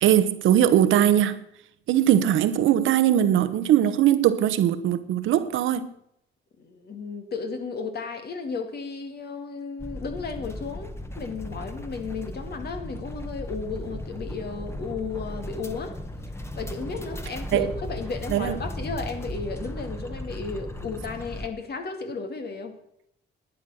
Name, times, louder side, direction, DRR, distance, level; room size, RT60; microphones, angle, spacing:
voice 1, 0.0-1.4 1.9-5.9 17.5-17.7 18.3-18.6, right 11 dB, 80° right, 1.0 m, -20 dB
voice 2, 6.6-16.0 16.6-22.8, left 4 dB, 55° left, 2.3 m, -34 dB
sound 1, 9.8-21.5, left 1 dB, 15° left, 1.4 m, -36 dB
11.5 x 9.4 x 6.3 m
cardioid pair, 90°, 20 cm